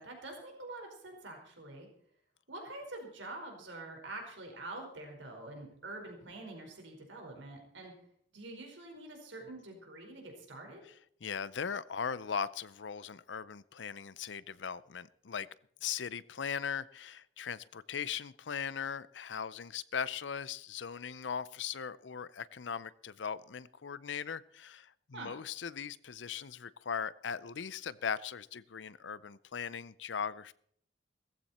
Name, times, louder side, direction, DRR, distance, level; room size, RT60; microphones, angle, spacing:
voice 1, 0.0-1.9 2.5-7.9 8.3-10.8 25.1-25.3, right 2 dB, 85° right, 2 dB, 4.8 m, -46 dB
voice 2, 11.2-15.5 15.8-30.5, left 7 dB, 75° left, 19 dB, 0.6 m, -39 dB
18.0 x 14.5 x 4.3 m, 0.63 s
head